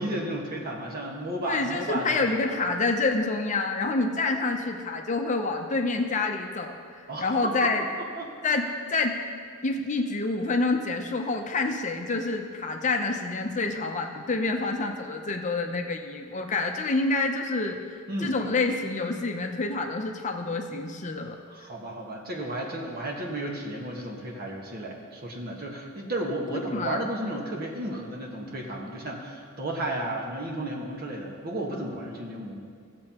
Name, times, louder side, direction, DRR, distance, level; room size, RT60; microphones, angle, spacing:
voice 1, 0.0-2.6 7.1-7.7 8.0-8.3 18.1-18.4 21.5-32.6, right 1 dB, 45° right, -1 dB, 1.4 m, -33 dB
voice 2, 1.4-7.9 8.4-9.2 9.6-17.8 18.2-21.4 26.5-27.1, left 3 dB, 35° left, 4 dB, 0.6 m, -27 dB
16.0 x 7.5 x 2.9 m, 2.3 s
head